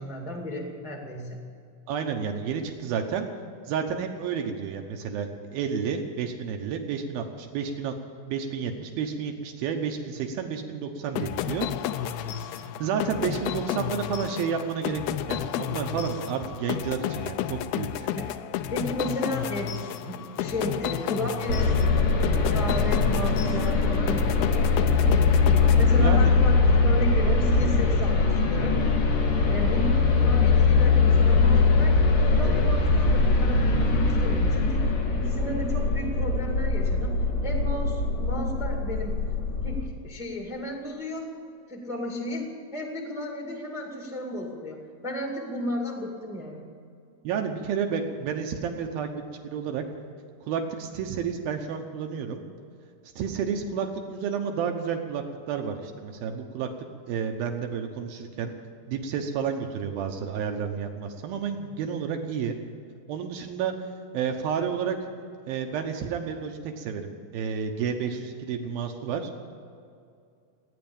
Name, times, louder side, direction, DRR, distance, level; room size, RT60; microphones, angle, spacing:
voice 1, 0.0-1.4 13.6-13.8 18.1-18.3 18.7-21.8 22.5-25.4 25.8-28.8 29.2-32.0 32.3-39.2 39.6-41.3 41.7-46.7, left 1 dB, ahead, 1 dB, 0.6 m, -34 dB
voice 2, 1.9-3.3 3.7-7.9 8.3-11.7 12.1-15.0 15.3-18.1 26.0-26.3 47.2-49.8 50.4-52.4 53.2-56.7 57.1-58.5 58.9-62.6 63.1-63.9 64.1-65.1 65.5-69.3, right 7 dB, 75° right, 4 dB, 2.6 m, -31 dB
sound 1, 11.2-26.5, left 11 dB, 80° left, 2.3 m, -32 dB
sound 2, 21.5-39.9, left 4 dB, 50° left, 2.5 m, -22 dB
17.5 x 9.4 x 8.8 m, 2.4 s
omnidirectional pair, 4.7 m